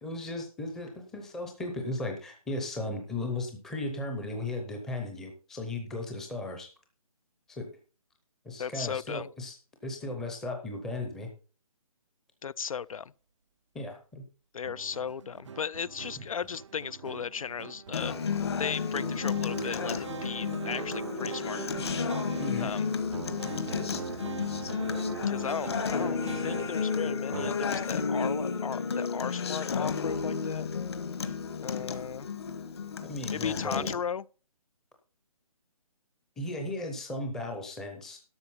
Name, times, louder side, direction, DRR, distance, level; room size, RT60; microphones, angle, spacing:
voice 1, 0.0-6.7 7.5-7.7 8.4-9.5 9.8-11.3 13.7-14.2 16.2-16.3 22.4-22.7 33.0-33.9 36.4-38.2, left 2 dB, ahead, 0.6 m, -36 dB
voice 2, 8.6-9.3 12.4-13.1 14.5-21.6 22.6-22.9 25.3-30.7 31.6-32.3 33.3-34.2, left 7 dB, 65° left, 0.4 m, -36 dB
sound 1, 14.6-27.6, right 6 dB, 55° right, 0.5 m, -41 dB
Acoustic guitar, 17.9-33.9, left 5 dB, 45° left, 1.3 m, -32 dB
12.5 x 6.3 x 5.5 m
hypercardioid pair, 170°, 19 cm